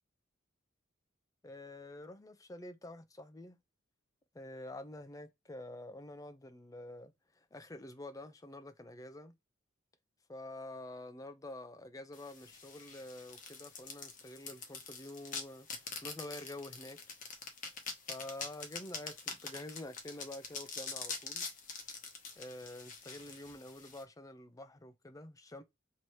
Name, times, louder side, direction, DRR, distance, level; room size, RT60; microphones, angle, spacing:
voice 1, 1.4-3.6 4.3-9.3 10.3-15.7 16.0-17.0 18.1-21.5 22.4-25.6, left 1 dB, 15° left, 0.5 m, -48 dB
sound 1, 12.1-24.0, left 5 dB, 40° left, 0.9 m, -45 dB
3.2 x 2.8 x 4.5 m
head